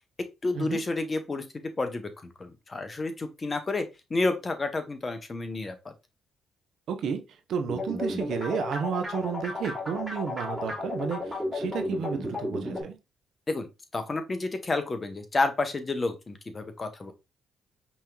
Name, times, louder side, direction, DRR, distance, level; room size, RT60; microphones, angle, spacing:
voice 1, 0.4-2.1 2.4-5.9 13.5-13.7 13.9-17.1, left 3 dB, 30° left, 0.8 m, -30 dB
voice 2, 6.9-7.2 7.5-13.0, right 6 dB, 70° right, 0.7 m, -32 dB
sound 1, 7.7-12.8, left 1 dB, ahead, 2.1 m, -33 dB
5.5 x 3.0 x 2.3 m
cardioid pair, 90°, 0 cm